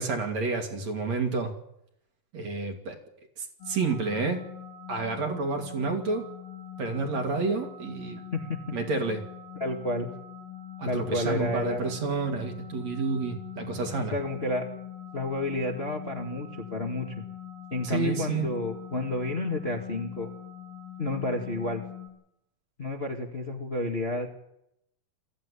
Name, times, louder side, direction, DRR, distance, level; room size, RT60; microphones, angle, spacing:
voice 1, 0.0-1.5 2.3-3.0 3.4-4.4 4.9-6.3 6.8-8.2 8.7-9.2 10.8-14.1 17.8-18.5, right 4 dB, 55° right, 3 dB, 3.8 m, -29 dB
sound 1, 3.6-22.1, left 9 dB, 75° left, 5.0 m, -43 dB
voice 2, 8.3-8.7 9.6-10.1 10.8-12.0 14.1-14.6 15.1-17.2 17.7-20.3 21.0-21.8 22.8-24.3, left 2 dB, 25° left, 2 dB, 1.6 m, -30 dB
22.0 x 15.0 x 10.0 m, 0.81 s
omnidirectional pair, 3.9 m